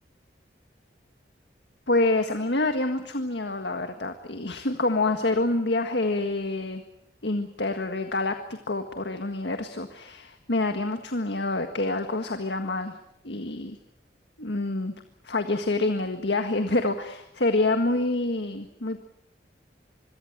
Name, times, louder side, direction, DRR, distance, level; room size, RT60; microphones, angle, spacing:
voice 1, 1.9-6.8 7.2-8.4 8.7-12.9 13.2-13.8 14.4-14.9 15.2-19.0, left 2 dB, 75° left, 7 dB, 1.7 m, -27 dB
26.0 x 23.0 x 7.4 m, 0.79 s
head